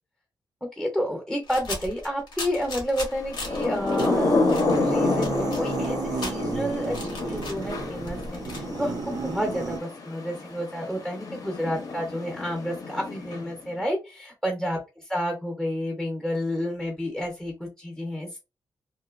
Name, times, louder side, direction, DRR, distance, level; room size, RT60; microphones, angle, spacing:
voice 1, 0.6-4.3 4.6-18.4, equal, 5° left, 1 dB, 0.7 m, -30 dB
sound 1, 1.4-4.1 4.5-8.6, left 2 dB, 85° left, 1.3 m, -37 dB
Thunder / Rain, 3.2-13.7, left 3 dB, 55° left, 0.9 m, -29 dB
sound 2, 4.0-9.8, right 5 dB, 50° right, 0.4 m, -32 dB
3.0 x 2.7 x 2.4 m, 0.27 s
wide cardioid pair, 145°, 8 cm